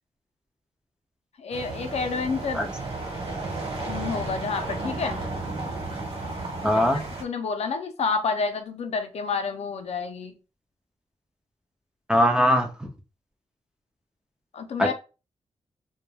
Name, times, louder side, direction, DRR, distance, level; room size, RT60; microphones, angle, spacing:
voice 1, 1.4-2.7 3.9-5.2 6.9-10.4 14.5-14.9, left 5 dB, 65° left, 0.5 m, -29 dB
sound 1, 1.5-7.2, right 2 dB, 50° right, 1.0 m, -33 dB
voice 2, 6.6-7.0 12.1-12.9 14.8-14.9, equal, 5° right, 0.3 m, -21 dB
2.2 x 2.2 x 3.1 m
wide cardioid pair, 150°, 12 cm